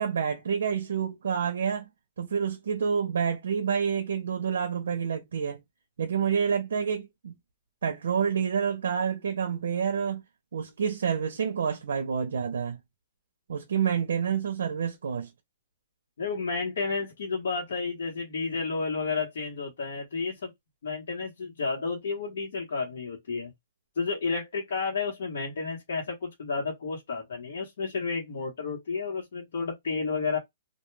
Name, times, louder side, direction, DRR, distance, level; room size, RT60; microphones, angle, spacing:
voice 1, 0.0-1.9 2.2-5.6 6.0-7.3 7.8-10.2 10.5-12.8 13.5-15.3, right 7 dB, 80° right, 0.5 m, -28 dB
voice 2, 16.2-20.5 20.8-23.5 24.0-30.4, left 4 dB, 70° left, 1.0 m, -31 dB
2.2 x 2.2 x 3.1 m
hypercardioid pair, 175°, 0 cm